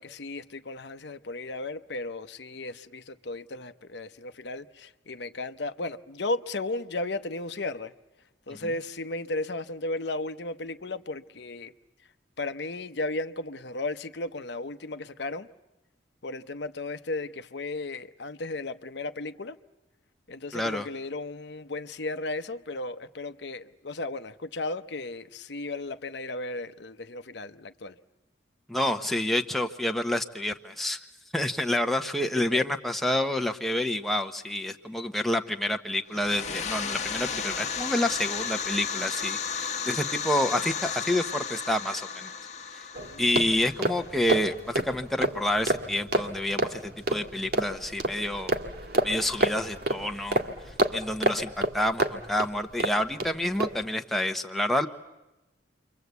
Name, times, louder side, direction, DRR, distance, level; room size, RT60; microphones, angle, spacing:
voice 1, 0.0-7.9 8.5-11.7 12.4-15.5 16.2-19.6 20.3-28.0 32.5-32.6 43.0-43.3, left 2 dB, 70° left, 0.9 m, -35 dB
voice 2, 20.5-20.9 28.7-31.0 31.3-42.3 43.2-48.5 49.0-50.4 50.9-54.9, left 1 dB, ahead, 1.0 m, -28 dB
sound 1, 36.1-44.6, left 6 dB, 40° left, 1.2 m, -34 dB
sound 2, 42.9-53.3 53.6-53.8, right 1 dB, 55° right, 1.9 m, -29 dB
29.5 x 24.0 x 8.2 m
head